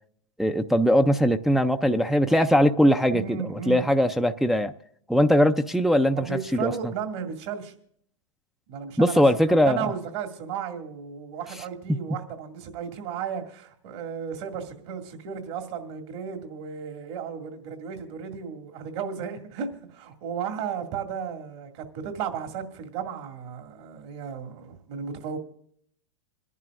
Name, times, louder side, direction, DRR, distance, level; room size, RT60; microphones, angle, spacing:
voice 1, 0.4-4.7 5.1-6.3 6.5-6.7 9.0-9.9, equal, ahead, 0.4 m, -20 dB
voice 2, 3.1-3.8 6.1-7.7 8.7-25.4, right 7 dB, 60° right, 2.2 m, -34 dB
27.0 x 11.0 x 2.5 m
hypercardioid pair, 115°, 16 cm